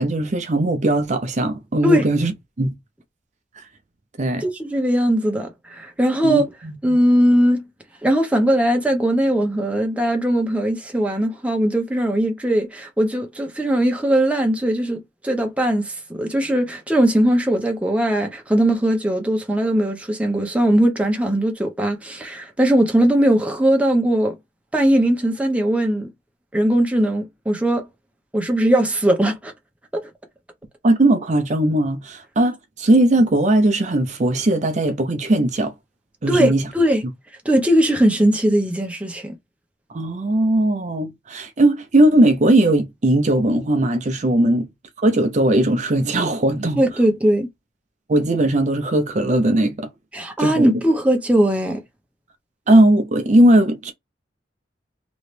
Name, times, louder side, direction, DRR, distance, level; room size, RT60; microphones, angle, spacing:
voice 1, 0.0-2.3 2.6-2.7 4.2-4.5 6.2-6.7 30.8-35.7 36.2-36.7 39.9-44.7 45.0-46.8 48.1-49.9 50.4-50.7 52.7-53.9, right 1 dB, 40° right, 0.6 m, -18 dB
voice 2, 4.4-6.5 6.8-7.6 8.0-24.4 24.7-26.1 26.5-27.9 28.3-29.5 29.9-30.0 36.3-37.0 37.4-39.3 44.4-44.5 46.8-47.5 50.1-51.8, right 1 dB, 5° right, 0.8 m, -19 dB
3.1 x 2.8 x 3.2 m
head